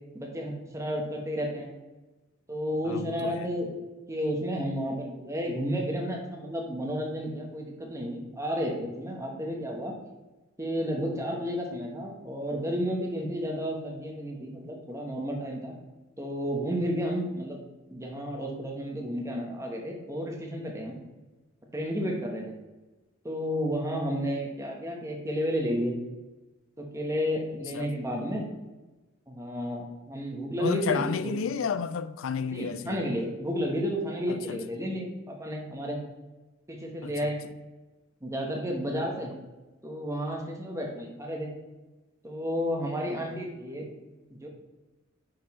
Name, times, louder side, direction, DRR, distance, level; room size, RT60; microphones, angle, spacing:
voice 1, 0.1-1.7 2.5-3.7 4.1-9.9 10.6-15.7 16.2-17.6 17.9-21.0 21.7-22.5 23.2-25.9 26.8-28.5 29.3-31.3 32.5-36.0 36.7-37.4 38.2-39.3 39.8-41.5 42.2-43.9 44.3-44.5, equal, 15° right, 1.1 m, -32 dB
voice 2, 2.9-3.5 27.7-27.9 30.6-33.0 34.3-34.6 37.0-37.3, left 6 dB, 75° left, 0.4 m, -32 dB
6.2 x 4.6 x 4.2 m
head